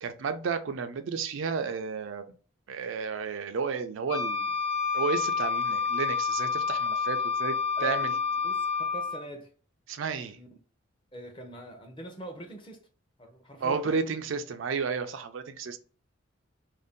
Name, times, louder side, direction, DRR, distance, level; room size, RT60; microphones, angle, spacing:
voice 1, 0.0-2.2 2.7-4.5 4.9-7.6 7.8-8.1 9.9-10.4 13.6-15.8, right 5 dB, 70° right, 0.4 m, -32 dB
Wind instrument woodwind instrument, 4.1-9.2, left 5 dB, 85° left, 1.0 m, -29 dB
voice 2, 7.8-9.5 10.3-10.6 11.1-12.8 13.2-14.0, equal, 25° left, 0.6 m, -43 dB
2.6 x 2.1 x 3.5 m
head